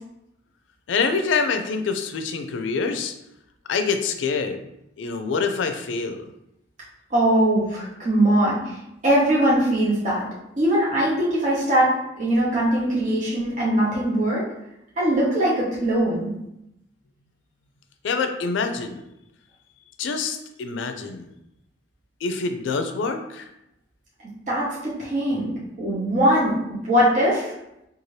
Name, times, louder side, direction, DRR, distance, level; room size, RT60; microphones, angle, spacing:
voice 1, 0.9-3.1 3.7-4.6 5.0-6.2 18.0-19.0 20.0-21.3 22.2-23.5, left 4 dB, 85° left, 7 dB, 0.4 m, -26 dB
voice 2, 7.1-8.7 9.0-10.2 10.6-11.9 12.2-14.4 15.0-16.3 24.5-27.5, right 1 dB, 40° right, -6 dB, 0.8 m, -21 dB
2.7 x 2.4 x 3.1 m, 0.84 s
head